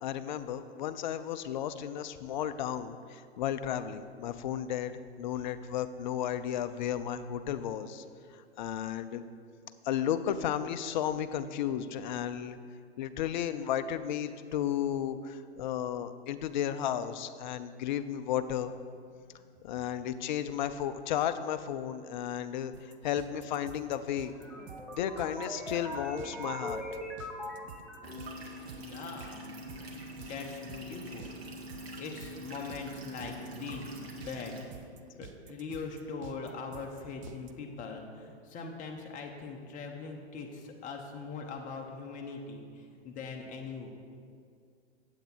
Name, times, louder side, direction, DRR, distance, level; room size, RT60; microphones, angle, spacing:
voice 1, 0.0-8.0 8.3-9.2 9.8-12.6 13.0-18.7 19.6-24.4 25.0-26.8, left 10 dB, 45° left, 11 dB, 0.5 m, -33 dB
sound 1, 22.7-37.5, right 8 dB, 30° right, 0.4 m, -50 dB
sound 2, 24.2-28.4, equal, ahead, 0.8 m, -41 dB
sound 3, 28.0-34.6, equal, 65° right, 1.6 m, -44 dB
voice 2, 28.8-29.6 29.9-31.3 32.0-34.5 35.1-44.0, left 4 dB, 25° left, 2 dB, 1.0 m, -42 dB
8.0 x 8.0 x 4.4 m, 2.3 s
hypercardioid pair, 120°, 33 cm